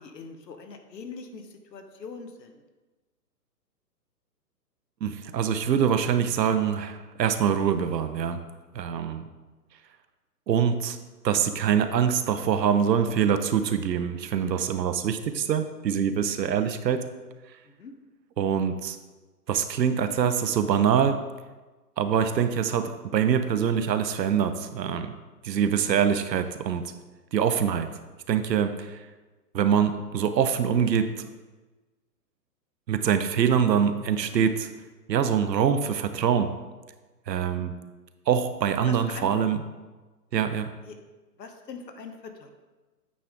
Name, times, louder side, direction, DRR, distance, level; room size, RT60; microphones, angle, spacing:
voice 1, 0.0-2.6 17.6-17.9 34.2-34.4 37.6-37.7 38.9-39.3 40.8-41.0 41.4-42.5, left 4 dB, 85° left, 6 dB, 1.0 m, -42 dB
voice 2, 5.0-8.4 8.7-9.3 10.5-11.0 11.2-17.0 18.4-19.0 19.5-21.2 22.0-25.1 25.4-26.9 27.3-27.9 28.3-29.0 29.5-31.3 32.9-34.7 35.1-36.5 37.3-37.7 38.3-39.7 40.3-40.7, right 8 dB, 85° right, 9 dB, 0.7 m, -24 dB
8.6 x 3.5 x 3.6 m, 1.2 s
hypercardioid pair, 150°, 49 cm